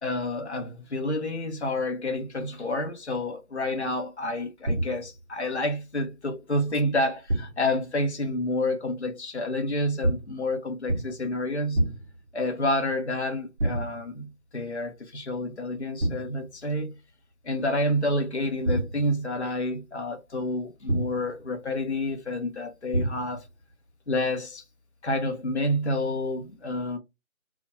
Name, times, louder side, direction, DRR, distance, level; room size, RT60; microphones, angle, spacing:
voice 1, 0.0-11.9 12.3-17.0 17.4-23.4 24.1-24.6 25.0-27.0, left 1 dB, 50° left, 0.5 m, -29 dB
sound 1, 4.6-5.2 7.3-7.8 10.0-10.5 10.9-11.3 11.7-12.3 13.6-14.2 16.0-16.5 18.6-19.3 20.9-21.4 22.9-23.5, right 1 dB, 50° right, 0.6 m, -28 dB
2.6 x 2.1 x 2.2 m
figure-of-eight pair, 170°, 44 cm